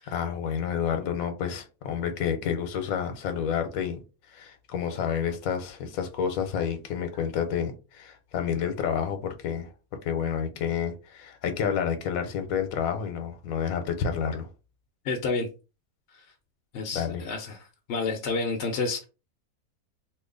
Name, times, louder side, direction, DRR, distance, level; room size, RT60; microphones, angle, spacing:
voice 1, 0.1-4.0 4.3-9.7 10.0-14.5 16.9-17.2, left 7 dB, 90° left, 1.1 m, -29 dB
voice 2, 15.0-15.5 16.1-16.2 16.7-19.1, left 4 dB, 65° left, 0.8 m, -30 dB
2.8 x 2.3 x 3.7 m
omnidirectional pair, 1.5 m